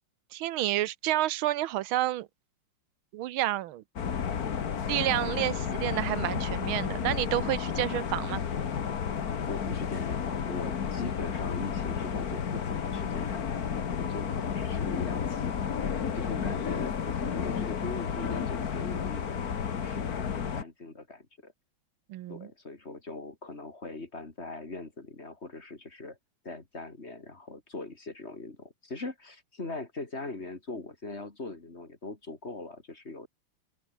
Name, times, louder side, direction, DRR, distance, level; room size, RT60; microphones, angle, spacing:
voice 1, 0.3-2.3 3.1-3.8 4.8-8.4 22.1-22.5, right 14 dB, 90° right, 1.6 m, -29 dB
sound 1, 4.0-20.6, left 7 dB, 50° left, 1.9 m, -32 dB
voice 2, 9.5-19.4 19.7-21.5 22.3-26.2 26.4-33.3, left 2 dB, 30° left, 3.2 m, -41 dB
open air
omnidirectional pair, 2.2 m